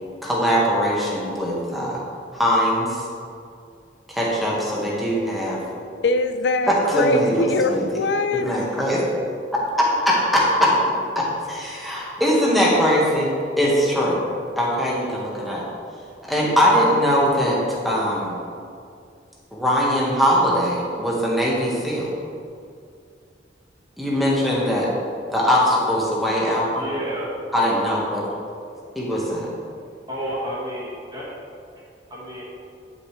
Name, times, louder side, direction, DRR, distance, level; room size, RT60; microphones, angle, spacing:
voice 1, 0.2-2.0 2.3-3.1 4.1-5.6 6.7-7.8 8.3-9.0 9.8-10.7 11.1-14.2 14.6-15.7 16.3-18.4 19.5-22.1 24.0-24.9 25.3-26.9 27.5-28.2 28.9-29.5, equal, ahead, -5 dB, 1.4 m, -21 dB
voice 2, 6.0-8.5, left 2 dB, 65° left, 9 dB, 0.5 m, -22 dB
voice 3, 26.7-27.3 30.1-31.3 32.1-32.5, equal, 25° right, -6 dB, 1.7 m, -31 dB
9.6 x 6.1 x 3.3 m, 2.4 s
head